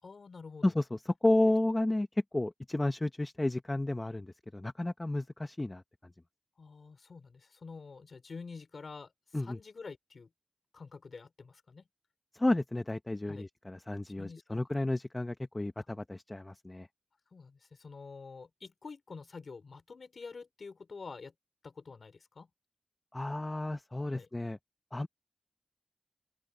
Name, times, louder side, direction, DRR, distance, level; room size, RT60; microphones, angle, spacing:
voice 1, 0.0-0.7 6.6-10.3 10.7-11.8 13.3-13.5 14.2-14.6 17.3-21.3 21.6-22.5 24.1-24.3, left 4 dB, 85° left, 4.4 m, -48 dB
voice 2, 0.6-2.1 2.3-5.8 9.3-9.6 12.3-16.9 23.1-24.6 24.9-25.1, left 1 dB, 30° left, 0.8 m, -32 dB
open air
wide cardioid pair, 55°, 0 cm